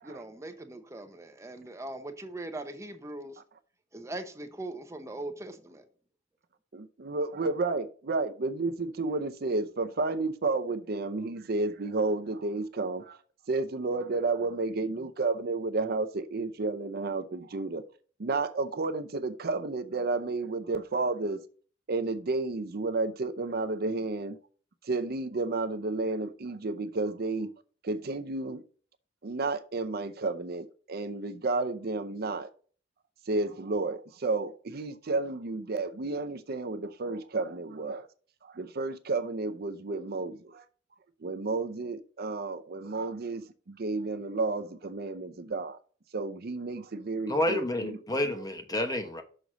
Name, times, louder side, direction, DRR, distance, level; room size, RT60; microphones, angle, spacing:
voice 1, 0.0-3.4 3.9-5.9, right 2 dB, 15° right, 0.8 m, -40 dB
voice 2, 6.7-13.2 13.5-17.8 18.2-21.4 21.9-24.4 24.8-27.5 27.8-28.6 29.2-32.5 33.3-38.1 38.4-40.6 41.2-45.8 46.1-48.0, right 3 dB, 55° right, 0.6 m, -31 dB
voice 3, 47.3-49.2, left 1 dB, 20° left, 1.1 m, -29 dB
6.5 x 4.0 x 6.1 m
head